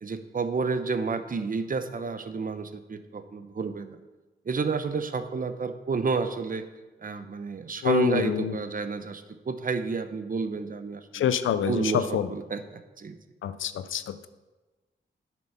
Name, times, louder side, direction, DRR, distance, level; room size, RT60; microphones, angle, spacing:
voice 1, 0.0-4.0 4.5-6.6 7.0-11.3 11.7-13.2, right 4 dB, 45° right, 10 dB, 0.8 m, -30 dB
voice 2, 7.8-8.5 11.1-12.3 13.4-14.3, left 9 dB, 90° left, 13 dB, 0.5 m, -26 dB
9.1 x 6.1 x 5.6 m, 1.2 s
cardioid pair, 70°, 20 cm